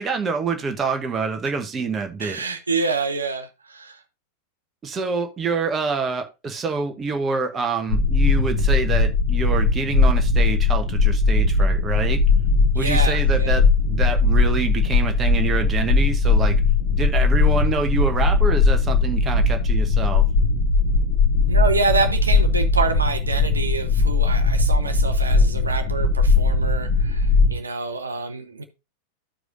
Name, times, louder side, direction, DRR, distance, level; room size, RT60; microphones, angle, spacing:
voice 1, 0.0-2.4 4.8-12.2 12.7-16.6 17.0-20.2, right 4 dB, 20° right, 1.1 m, -26 dB
voice 2, 2.2-4.0 12.7-13.6 21.4-28.6, right 4 dB, 75° right, 0.7 m, -27 dB
sound 1, 7.9-27.5, left 3 dB, 55° left, 1.6 m, -19 dB
14.0 x 4.8 x 2.5 m
figure-of-eight pair, 90°, 0 cm